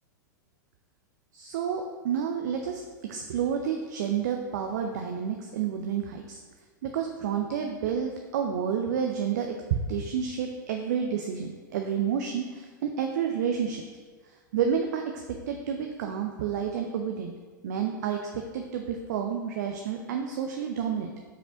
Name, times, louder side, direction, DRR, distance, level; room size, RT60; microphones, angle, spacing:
voice 1, 1.3-6.4 6.8-9.5 9.9-13.8 14.5-15.0 15.3-17.3 17.6-21.1, right 7 dB, 55° right, 3 dB, 0.7 m, -30 dB
5.5 x 5.1 x 5.0 m, 1.4 s
figure-of-eight pair, 95°, 11 cm